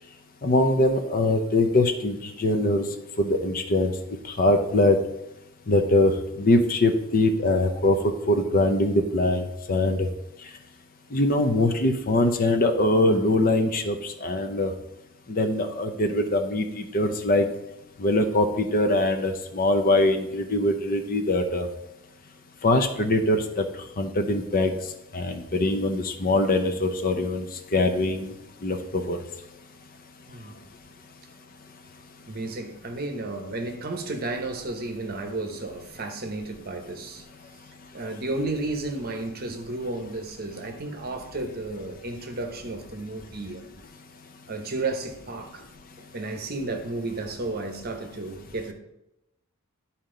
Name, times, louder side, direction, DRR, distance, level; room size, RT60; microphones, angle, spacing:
voice 1, 0.4-2.8 3.2-3.9 4.4-5.0 5.7-6.1 6.4-10.1 11.1-14.7 15.3-17.4 18.0-21.7 22.6-23.6 24.0-24.7 25.1-27.4 27.7-28.3 28.6-29.2, left 2 dB, 40° left, 0.7 m, -22 dB
voice 2, 32.3-37.2 37.9-43.6 44.5-45.6 46.0-48.7, right 2 dB, 45° right, 1.0 m, -33 dB
11.0 x 4.3 x 3.8 m
head